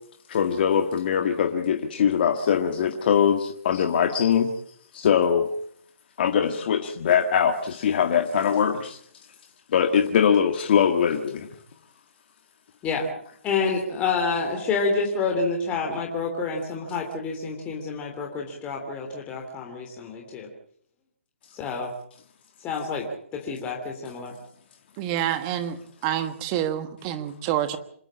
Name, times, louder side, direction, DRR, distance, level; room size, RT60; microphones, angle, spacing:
voice 1, 0.3-4.5 4.9-5.5 6.2-9.0 9.7-11.5, left 8 dB, 45° left, 5 dB, 1.8 m, -22 dB
voice 2, 13.4-20.5 21.5-21.9 22.6-23.1 23.3-24.3, left 4 dB, 20° left, 1 dB, 3.1 m, -28 dB
voice 3, 25.0-27.8, right 11 dB, 25° right, 11 dB, 1.4 m, -27 dB
27.0 x 12.0 x 8.6 m, 0.64 s
hypercardioid pair, 150°, 7 cm